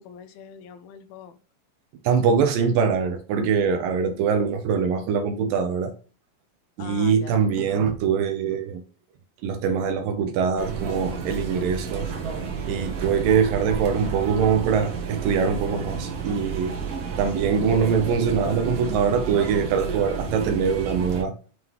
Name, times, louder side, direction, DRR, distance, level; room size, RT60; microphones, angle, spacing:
voice 1, 0.0-1.4 6.8-7.5 13.3-13.5, left 7 dB, 80° left, 2.4 m, -43 dB
voice 2, 2.0-5.9 6.8-8.8 9.4-12.1 12.7-16.8 17.2-21.3, right 6 dB, 75° right, 2.2 m, -23 dB
sound 1, 10.6-21.2, right 6 dB, 60° right, 1.8 m, -31 dB
9.5 x 3.7 x 3.0 m
omnidirectional pair, 4.4 m